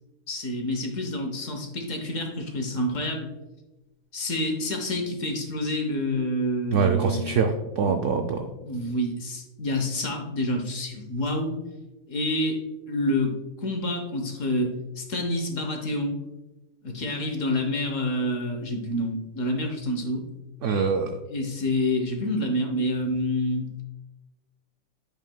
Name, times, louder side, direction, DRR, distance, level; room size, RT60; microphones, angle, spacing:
voice 1, 0.3-3.3 4.1-7.5 7.9-8.0 8.6-11.5 12.1-12.6 12.9-16.1 16.8-20.2 21.3-23.7, left 1 dB, 55° left, 4 dB, 1.2 m, -28 dB
voice 2, 6.7-8.4 20.6-21.1, right 5 dB, 80° right, 5 dB, 0.6 m, -24 dB
8.9 x 5.5 x 2.2 m, 1.1 s
omnidirectional pair, 1.8 m